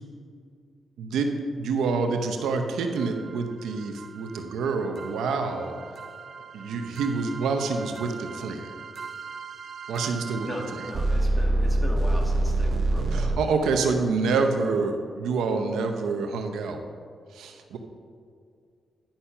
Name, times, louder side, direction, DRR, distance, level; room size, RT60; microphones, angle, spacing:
voice 1, 1.0-1.3 1.6-5.7 6.5-8.7 9.9-10.5 13.1-16.8 17.3-17.8, right 4 dB, 90° right, 5 dB, 0.8 m, -27 dB
sound 1, 3.0-13.4, right 2 dB, 55° right, 0.6 m, -29 dB
voice 2, 10.4-13.3, equal, 10° left, -1 dB, 2.1 m, -37 dB
10.5 x 5.7 x 5.6 m, 2.2 s
cardioid pair, 70°, 0 cm